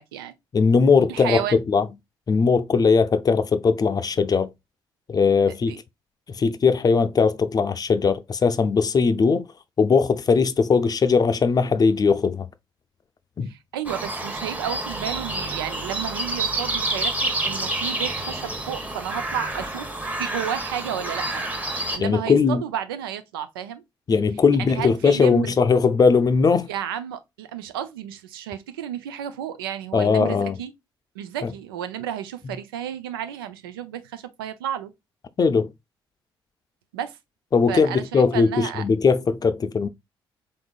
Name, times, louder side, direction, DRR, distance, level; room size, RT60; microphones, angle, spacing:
voice 1, 0.0-0.3 1.1-1.6 5.7-5.8 13.5-19.9 20.2-21.4 21.9-23.8 24.6-25.5 26.7-30.7 31.1-34.9 36.9-37.2 37.7-38.8, right 10 dB, 75° right, 0.5 m, -32 dB
voice 2, 0.5-1.9 2.3-4.5 5.1-5.8 6.3-9.4 9.8-12.5 13.4-13.5 22.0-22.6 24.1-26.7 29.9-30.6 31.4-31.5 35.4-35.7 37.5-39.9, left 5 dB, 30° left, 0.5 m, -19 dB
sound 1, 13.8-22.0, right 2 dB, 10° right, 1.1 m, -28 dB
3.8 x 3.6 x 2.4 m
figure-of-eight pair, 45°, 12 cm